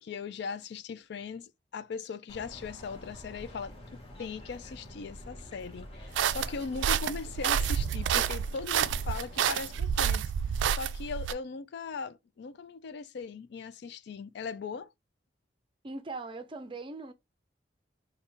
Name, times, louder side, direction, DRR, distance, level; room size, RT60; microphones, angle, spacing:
voice 1, 0.0-10.3 10.7-14.9, left 5 dB, 65° left, 0.4 m, -39 dB
sound 1, 2.3-9.8, left 1 dB, 35° left, 1.0 m, -48 dB
sound 2, 6.2-11.3, right 8 dB, 90° right, 0.3 m, -29 dB
voice 2, 15.8-17.1, right 3 dB, 30° right, 0.5 m, -40 dB
3.6 x 2.3 x 3.9 m
head